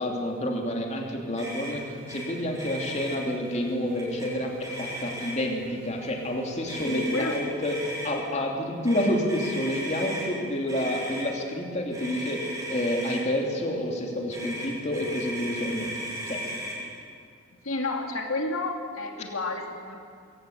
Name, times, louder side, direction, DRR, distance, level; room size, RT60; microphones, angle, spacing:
voice 1, 0.0-7.8 8.0-15.9 16.3-16.4, left 1 dB, 35° left, 1 dB, 2.9 m, -29 dB
Motor vehicle (road), 1.4-1.7 2.1-2.2 2.5-3.2 4.0-4.3 4.6-5.5 6.7-8.1 8.8-10.3 10.7-11.3 11.9-13.2 14.3-16.8, equal, 15° right, 6.0 m, -36 dB
sound 1, 1.7-6.8, right 1 dB, 45° right, 6.2 m, -46 dB
voice 2, 6.8-7.4 8.9-9.0 17.6-20.0, left 2 dB, 85° left, 3 dB, 2.4 m, -31 dB
22.5 x 17.5 x 8.6 m, 2.3 s
head